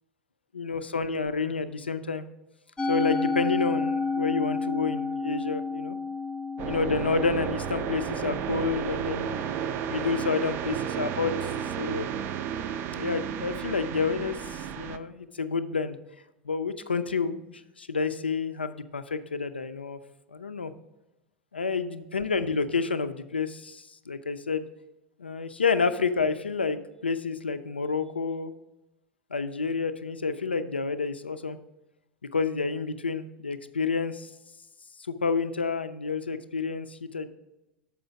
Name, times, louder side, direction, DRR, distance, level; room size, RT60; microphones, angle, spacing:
voice 1, 0.5-2.3 2.9-6.0 6.7-12.1 13.0-16.0 16.4-20.0 20.3-20.7 21.5-24.6 25.2-28.5 29.3-31.6 32.3-34.3 35.1-37.3, left 4 dB, 85° left, 11 dB, 0.4 m, -29 dB
Musical instrument, 2.8-9.2, left 4 dB, 20° left, 0.6 m, -31 dB
sound 1, 6.6-15.0, right 8 dB, 40° right, 0.4 m, -32 dB
6.8 x 4.9 x 4.9 m, 0.98 s
figure-of-eight pair, 80°, 6 cm